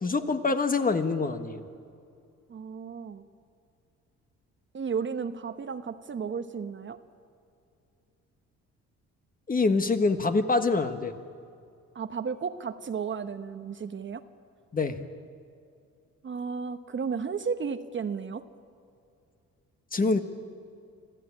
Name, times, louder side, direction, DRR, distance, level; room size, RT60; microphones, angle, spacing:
voice 1, 0.0-1.6 9.5-11.1 14.7-15.0 19.9-20.2, left 3 dB, 30° left, 8 dB, 1.5 m, -25 dB
voice 2, 2.5-3.2 4.7-7.0 11.9-14.2 16.2-18.4, right 6 dB, 40° right, 10 dB, 1.0 m, -33 dB
25.5 x 14.5 x 8.7 m, 2.4 s
cardioid pair, 90°, 30 cm